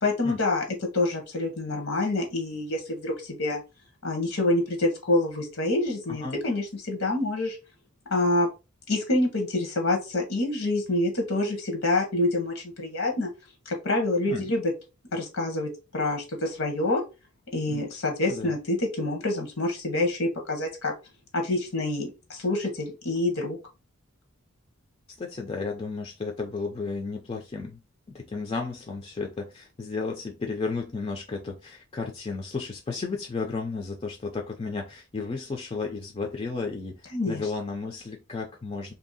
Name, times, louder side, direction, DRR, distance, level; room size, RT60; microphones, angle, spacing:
voice 1, 0.0-0.6 0.9-3.6 4.0-7.6 8.1-8.5 8.9-13.3 13.6-14.7 15.1-17.0 17.5-20.9 21.3-23.6 37.1-37.4, left 2 dB, 75° left, 1.0 m, -27 dB
voice 2, 6.1-6.4 14.3-14.5 17.7-17.9 18.3-18.6 25.2-27.8 28.1-38.9, left 4 dB, 25° left, 0.4 m, -33 dB
2.9 x 2.7 x 4.0 m
head